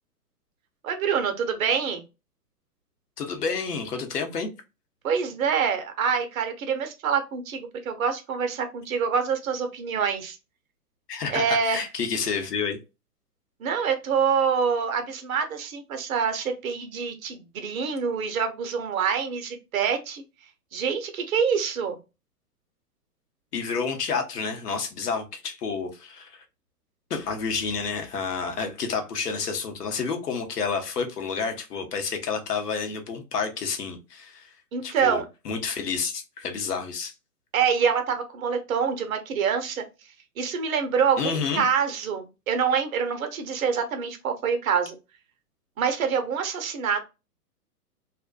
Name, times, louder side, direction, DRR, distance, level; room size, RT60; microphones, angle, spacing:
voice 1, 0.8-2.0 5.0-10.4 11.3-11.8 13.6-20.2 20.7-22.0 34.7-35.2 37.5-39.8 40.4-45.0 45.8-47.0, right 6 dB, 60° right, 0.8 m, -26 dB
voice 2, 3.2-4.5 11.1-12.8 23.5-26.4 27.1-34.5 34.8-37.1 41.2-41.6, left 5 dB, 80° left, 0.9 m, -29 dB
2.5 x 2.1 x 2.3 m
hypercardioid pair, 120°, 47 cm